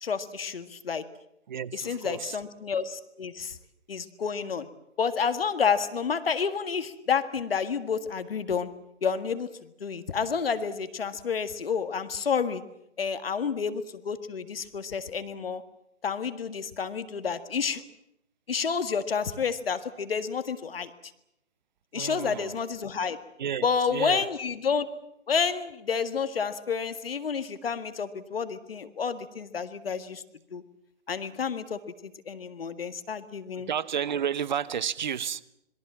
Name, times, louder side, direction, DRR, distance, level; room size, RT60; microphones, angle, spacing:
voice 1, 0.0-1.0 1.7-3.6 3.9-4.7 5.0-8.7 9.0-9.5 9.8-12.6 13.0-15.6 16.0-17.8 18.5-20.9 21.9-23.2 23.6-24.9 25.3-30.2 30.5-30.6 31.1-33.7, left 6 dB, 55° left, 11 dB, 1.9 m, -30 dB
voice 2, 1.5-2.4 21.9-22.6 23.4-24.3 33.5-35.4, right 8 dB, 40° right, 19 dB, 1.0 m, -32 dB
27.0 x 22.0 x 7.4 m, 0.78 s
figure-of-eight pair, 135°, 36 cm